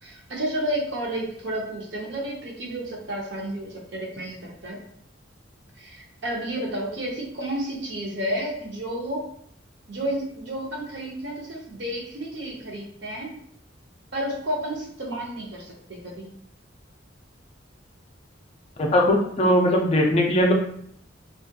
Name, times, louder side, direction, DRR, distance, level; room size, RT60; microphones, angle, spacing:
voice 1, 0.0-4.8 5.8-9.3 9.9-13.3 14.1-16.3, right 1 dB, 65° right, -2 dB, 0.7 m, -31 dB
voice 2, 18.8-20.5, equal, 30° left, 0 dB, 0.3 m, -20 dB
2.7 x 2.3 x 2.2 m, 0.66 s
head